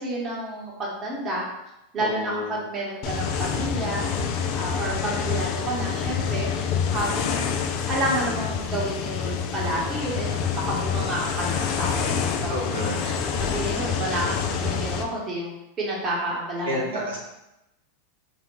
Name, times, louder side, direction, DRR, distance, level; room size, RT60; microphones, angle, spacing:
voice 1, 0.0-1.4 1.9-4.0 4.5-6.5 6.9-7.4 7.9-12.5 12.8-13.1 13.4-17.2, right 1 dB, 30° right, -4 dB, 0.9 m, -30 dB
voice 2, 2.0-2.6 12.4-13.1 16.6-17.2, equal, 85° right, -4 dB, 0.7 m, -30 dB
wind.loop, 3.0-15.0, left 6 dB, 50° left, 0.3 m, -27 dB
2.4 x 2.1 x 3.0 m, 0.91 s
hypercardioid pair, 105°, 0 cm